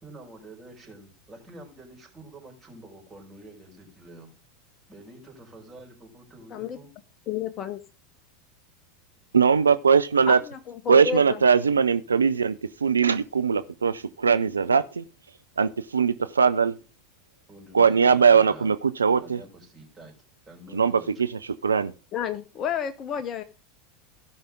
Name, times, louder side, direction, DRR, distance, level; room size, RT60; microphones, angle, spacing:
voice 1, 0.0-4.3 4.9-6.9 17.5-18.7 19.2-20.1 20.5-21.1, right 1 dB, 15° right, 4.9 m, -47 dB
voice 2, 7.3-7.8 10.3-11.4 22.1-23.4, left 8 dB, 35° left, 0.8 m, -31 dB
voice 3, 9.3-10.4 10.9-12.5 12.8-15.0 15.6-16.8 17.7-19.4 20.7-20.9 21.6-21.9, right 6 dB, 75° right, 0.4 m, -20 dB
16.0 x 5.6 x 3.7 m
figure-of-eight pair, 80°, 0 cm